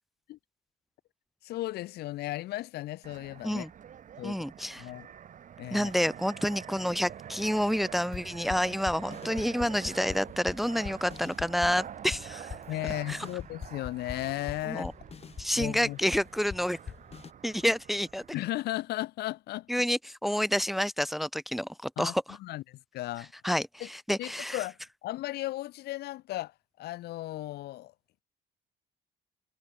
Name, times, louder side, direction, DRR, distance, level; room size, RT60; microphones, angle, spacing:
voice 1, 1.4-3.7 4.2-4.4 4.8-5.1 5.6-5.9 12.7-14.9 15.6-16.0 18.3-19.7 22.0-22.1 22.4-23.3 23.8-23.9 24.2-24.8 25.0-26.5 26.8-27.9, left 16 dB, 75° left, 0.9 m, -35 dB
Fixed-wing aircraft airplane, 3.0-18.3, right 9 dB, 50° right, 3.6 m, -46 dB
voice 2, 4.2-4.9 5.7-12.5 13.1-13.2 14.7-14.9 15.4-16.8 17.4-18.2 19.7-22.4 23.4-24.6, equal, ahead, 0.9 m, -29 dB
sound 1, 8.1-17.3, left 7 dB, 35° left, 2.0 m, -43 dB
cardioid pair, 110°, 17 cm